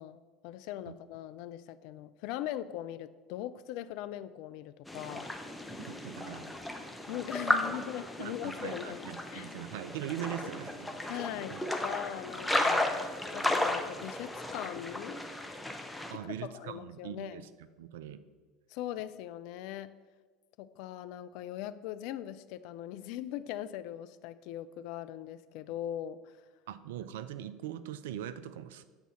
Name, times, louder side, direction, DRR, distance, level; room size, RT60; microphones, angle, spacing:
voice 1, 0.0-5.3 7.1-9.5 11.1-12.9 13.3-15.2 16.1-17.4 18.7-19.9 20.6-26.3, left 12 dB, 55° left, 13 dB, 0.3 m, -40 dB
sound 1, 4.9-16.1, left 1 dB, 5° left, 0.7 m, -34 dB
voice 2, 5.9-6.5 8.2-11.0 11.5-11.6 16.1-18.3 26.7-28.8, right 11 dB, 65° right, 13 dB, 0.3 m, -41 dB
8.0 x 4.0 x 5.7 m, 1.5 s
figure-of-eight pair, 70°, 0 cm